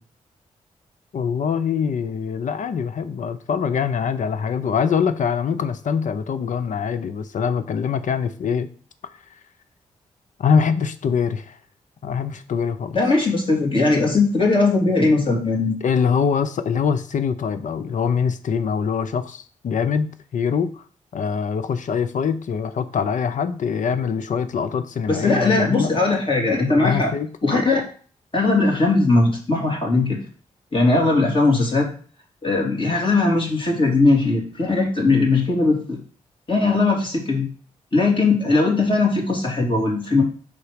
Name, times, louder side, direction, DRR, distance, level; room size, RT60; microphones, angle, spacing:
voice 1, 1.1-8.7 10.4-11.6 12.0-13.0 15.8-20.8 21.1-25.9 26.7-27.3, left 6 dB, 60° left, 12 dB, 0.6 m, -23 dB
voice 2, 12.9-15.8 25.1-27.1 27.4-27.8 28.3-30.2 30.7-31.9 32.4-36.0 36.5-37.5 37.9-40.2, left 3 dB, 35° left, -1 dB, 2.6 m, -19 dB
5.1 x 4.0 x 5.1 m, 0.43 s
supercardioid pair, 40°, 14 cm